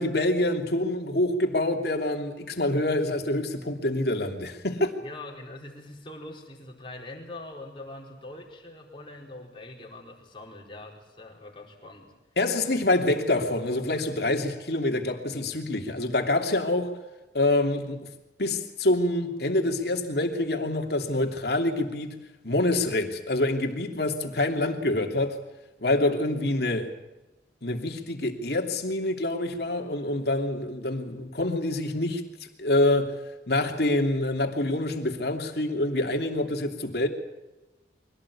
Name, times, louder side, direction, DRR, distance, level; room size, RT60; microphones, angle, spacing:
voice 1, 0.0-4.9 12.4-17.0 17.3-18.1 18.4-22.2 22.4-25.4 25.8-26.9 27.6-32.2 32.6-33.2 33.5-37.1, left 1 dB, 60° left, 3.0 m, -26 dB
voice 2, 5.0-12.1, left 2 dB, 30° left, 4.8 m, -43 dB
24.5 x 17.5 x 8.6 m
head